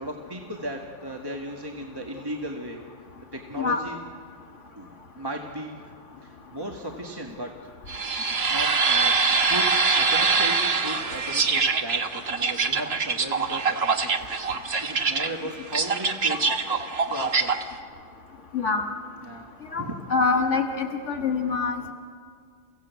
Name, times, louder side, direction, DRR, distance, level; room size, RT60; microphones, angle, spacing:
voice 1, 0.0-2.8 3.3-4.0 4.8-5.8 6.2-7.5 8.5-9.7 9.9-16.5 17.1-17.5 19.2-19.5 19.7-20.0, right 1 dB, 20° right, 1 dB, 1.6 m, -36 dB
sound 1, 7.9-17.6, right 4 dB, 60° right, 1.5 m, -24 dB
voice 2, 20.1-21.9, left 4 dB, 75° left, 4 dB, 1.9 m, -25 dB
29.0 x 16.5 x 8.2 m, 2.1 s
omnidirectional pair, 1.2 m